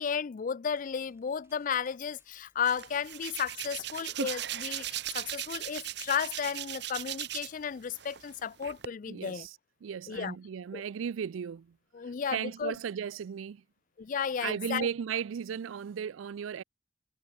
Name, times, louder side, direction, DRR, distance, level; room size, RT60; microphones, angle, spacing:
voice 1, 0.0-9.5 10.1-10.4 10.7-10.8 11.9-12.8 14.0-14.9, left 7 dB, 40° left, 0.4 m, -33 dB
sound 1, 0.7-5.9, right 3 dB, 15° right, 4.7 m, -70 dB
Hands, 2.6-7.6 8.0-8.9, right 10 dB, 60° right, 1.3 m, -38 dB
voice 2, 9.1-9.6 9.8-11.7 12.3-13.6 14.4-16.6, right 7 dB, 85° right, 0.4 m, -35 dB
head